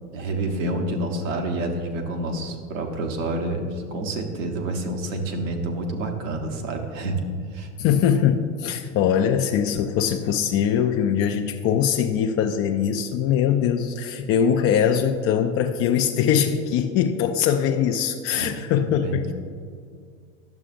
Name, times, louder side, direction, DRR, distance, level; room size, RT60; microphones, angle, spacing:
voice 1, 0.1-7.2 7.5-7.7 18.3-18.7 18.9-19.3, right 2 dB, 75° right, 3 dB, 1.2 m, -28 dB
voice 2, 7.8-19.3, left 8 dB, 40° left, 5 dB, 0.4 m, -22 dB
11.5 x 6.8 x 2.5 m, 2.2 s
hypercardioid pair, 90°, 39 cm